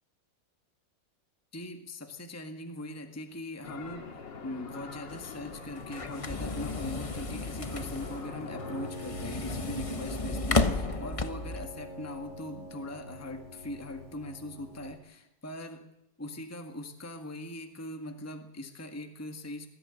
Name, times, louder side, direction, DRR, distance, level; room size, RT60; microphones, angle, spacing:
voice 1, 1.5-4.1 4.4-15.9 16.2-19.7, left 1 dB, 10° left, 6 dB, 1.6 m, -41 dB
sound 1, 3.6-8.9, left 4 dB, 80° left, 2.7 m, -43 dB
sound 2, 5.1-11.6, left 3 dB, 25° left, 0.8 m, -33 dB
Piano, 8.5-15.0, right 1 dB, 60° left, 8.2 m, -44 dB
21.0 x 14.5 x 9.9 m, 0.85 s
omnidirectional pair, 2.0 m